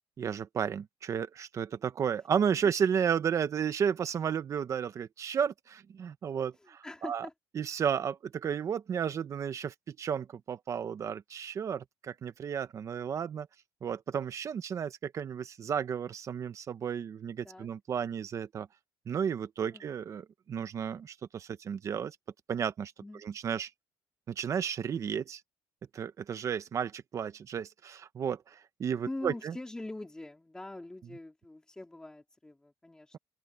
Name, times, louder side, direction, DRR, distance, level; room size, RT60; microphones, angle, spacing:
voice 1, 0.2-7.3 7.5-13.5 13.8-18.7 19.1-22.2 22.5-22.9 23.2-23.7 24.3-25.4 25.9-29.6, right 7 dB, 30° right, 1.1 m, -33 dB
voice 2, 6.8-7.3 17.4-17.7 19.7-19.8 23.0-23.2 29.1-33.2, left 2 dB, 5° left, 3.7 m, -43 dB
open air
cardioid pair, 165°, 10 cm